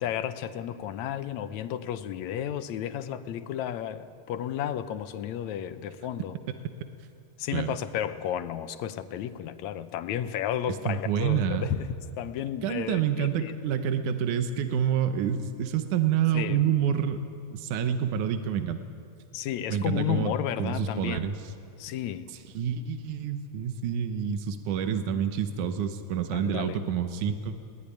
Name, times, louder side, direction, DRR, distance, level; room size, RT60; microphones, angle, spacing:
voice 1, 0.0-6.4 7.4-11.9 12.2-13.6 16.3-16.6 19.3-21.3 21.8-22.3 26.3-26.9, left 10 dB, 75° left, 11 dB, 2.1 m, -32 dB
voice 2, 10.9-11.7 12.6-17.2 17.5-18.8 19.7-20.3 20.6-21.4 22.6-27.6, right 8 dB, 85° right, 8 dB, 2.4 m, -28 dB
21.0 x 19.5 x 10.0 m, 2.3 s
omnidirectional pair, 3.5 m